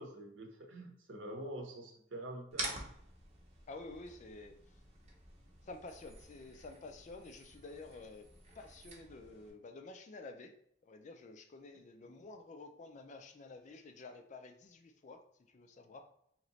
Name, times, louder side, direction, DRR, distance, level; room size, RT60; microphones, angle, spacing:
voice 1, 0.0-2.8, right 1 dB, 65° right, 2 dB, 0.8 m, -46 dB
sound 1, 2.5-9.5, right 2 dB, 35° right, 0.7 m, -48 dB
voice 2, 3.7-4.8 5.6-8.3 8.5-10.5 10.8-15.2 15.5-16.0, left 3 dB, 35° left, 5 dB, 0.3 m, -50 dB
3.1 x 2.9 x 4.0 m, 0.69 s
head